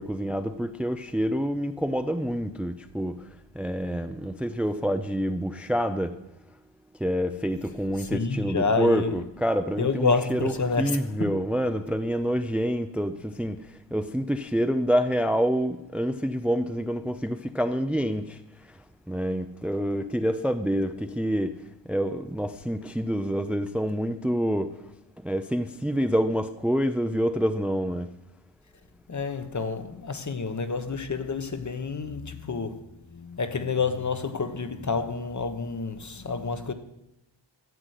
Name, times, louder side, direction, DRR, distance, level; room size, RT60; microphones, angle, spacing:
voice 1, 0.0-6.2 7.0-10.5 10.8-24.9 25.2-28.1, equal, 5° right, 0.5 m, -27 dB
voice 2, 8.0-9.2 9.8-11.3 29.1-36.7, left 4 dB, 40° left, 1.1 m, -29 dB
14.0 x 7.7 x 8.2 m
wide cardioid pair, 115°, 46 cm